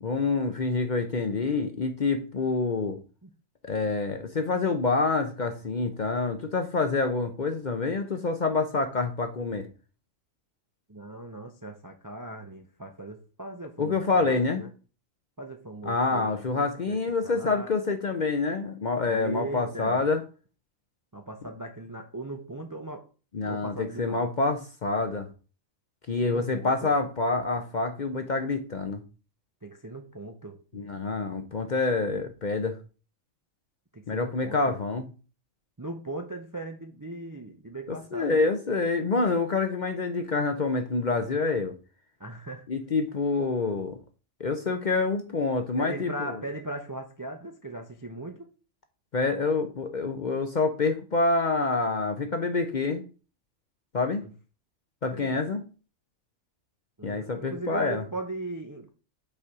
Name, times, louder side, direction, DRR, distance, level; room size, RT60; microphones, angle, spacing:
voice 1, 0.0-3.0 3.6-9.7 13.8-14.7 15.8-20.2 23.3-25.3 26.1-29.0 30.7-32.8 34.1-35.1 37.9-41.7 42.7-44.0 44.4-46.4 49.1-53.0 53.9-54.2 55.0-55.6 57.0-58.0, left 3 dB, 45° left, 7 dB, 0.6 m, -27 dB
voice 2, 10.9-14.7 15.4-17.7 19.0-20.0 21.1-23.1 23.4-24.2 26.2-26.9 29.6-30.9 33.9-34.8 35.8-38.4 42.2-42.6 45.8-48.5 54.2-54.3 55.1-55.3 57.0-58.9, right 2 dB, 25° right, 5 dB, 0.4 m, -39 dB
5.4 x 4.3 x 4.7 m, 0.35 s
omnidirectional pair, 1.4 m